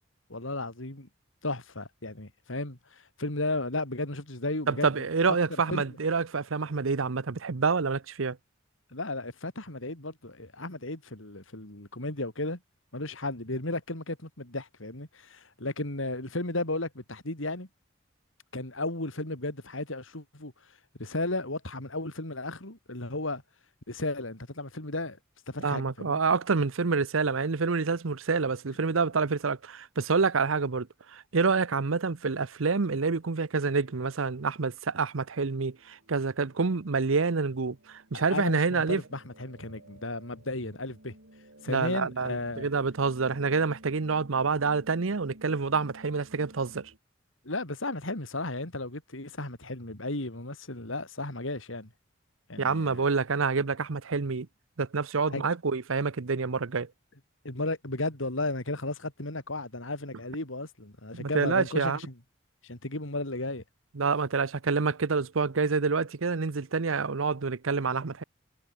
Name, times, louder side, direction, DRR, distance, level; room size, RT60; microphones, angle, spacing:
voice 1, 0.3-1.1 1.4-5.8 8.9-12.6 12.9-17.7 18.5-20.5 21.0-23.4 23.9-25.2 25.5-26.2 38.3-41.1 41.6-42.7 47.4-51.9 52.5-53.1 55.3-55.5 57.4-62.1 62.6-63.6, left 2 dB, 75° left, 4.1 m, -34 dB
voice 2, 4.7-8.4 25.6-39.0 41.7-46.9 52.6-54.5 54.8-56.9 61.1-62.0 63.9-68.2, right 4 dB, 85° right, 0.8 m, -27 dB
sound 1, 35.1-47.0, right 1 dB, 65° right, 5.7 m, -55 dB
head